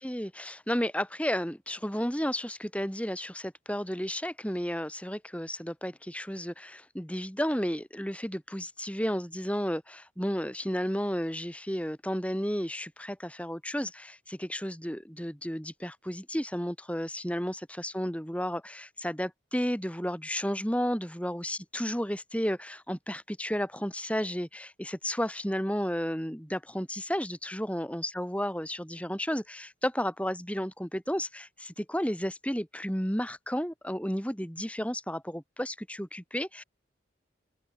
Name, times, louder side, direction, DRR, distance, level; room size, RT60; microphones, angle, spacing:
voice 1, 0.0-36.6, equal, 5° left, 7.5 m, -32 dB
open air
head